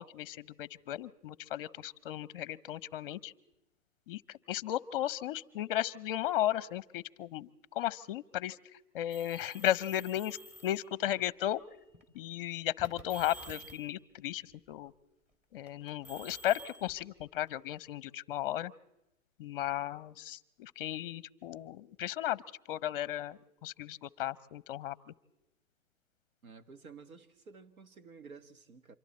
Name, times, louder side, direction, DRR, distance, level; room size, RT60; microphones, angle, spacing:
voice 1, 0.0-3.3 4.1-10.4 10.6-11.6 12.1-14.9 15.5-18.7 19.4-22.4 22.7-25.0, left 13 dB, 40° left, 0.6 m, -35 dB
sound 1, 9.1-10.8 11.7-12.0 12.8-13.9 15.7-17.8, right 1 dB, 15° right, 2.9 m, -50 dB
voice 2, 26.4-29.0, right 5 dB, 75° right, 1.7 m, -52 dB
26.0 x 23.5 x 4.3 m
hypercardioid pair, 135°, 43 cm